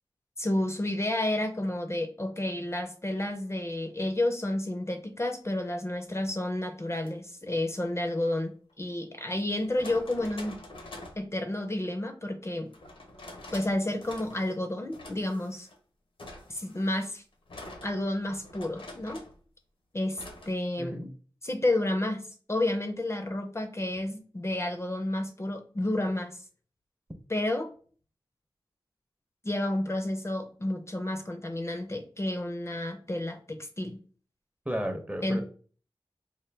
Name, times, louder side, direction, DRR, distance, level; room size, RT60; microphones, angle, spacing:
voice 1, 0.4-10.6 11.2-12.7 13.5-15.7 16.5-17.2 17.8-19.2 19.9-21.1 21.4-26.4 27.3-27.7 29.4-34.0 35.2-35.4, left 1 dB, 30° left, 0.5 m, -31 dB
sound 1, 6.9-7.1 8.7-8.8 9.5-11.3 12.7-13.7 14.0-14.6 14.9-15.8 16.2-19.4 20.1-20.5, left 1 dB, 75° left, 0.7 m, -46 dB
voice 2, 20.8-21.1 34.7-35.4, equal, 15° right, 0.6 m, -33 dB
4.3 x 2.1 x 3.3 m
wide cardioid pair, 65°, 9 cm